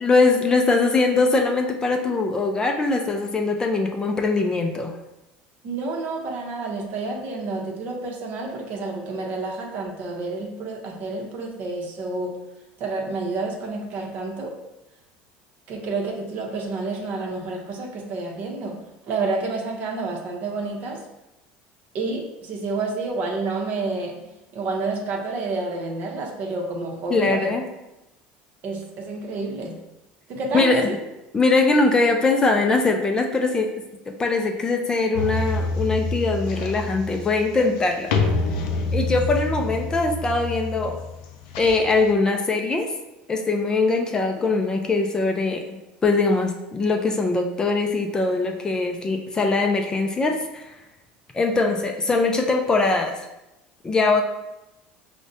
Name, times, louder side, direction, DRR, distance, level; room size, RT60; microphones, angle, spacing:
voice 1, 0.0-5.0 27.1-27.6 30.5-30.8 31.3-33.7 34.1-38.1 38.9-41.0 41.6-42.9 43.3-45.6 46.0-50.6 51.3-53.2 53.8-54.2, left 3 dB, 20° left, 4 dB, 0.3 m, -21 dB
voice 2, 5.6-12.4 12.8-14.6 15.7-18.8 19.1-21.0 21.9-24.2 24.5-27.5 28.6-29.8 30.3-31.0 53.9-54.1, right 3 dB, 50° right, 1 dB, 0.7 m, -29 dB
sound 1, 35.1-42.1, left 2 dB, 90° left, 0.5 m, -27 dB
4.8 x 2.1 x 2.7 m, 0.95 s
cardioid pair, 130°, 4 cm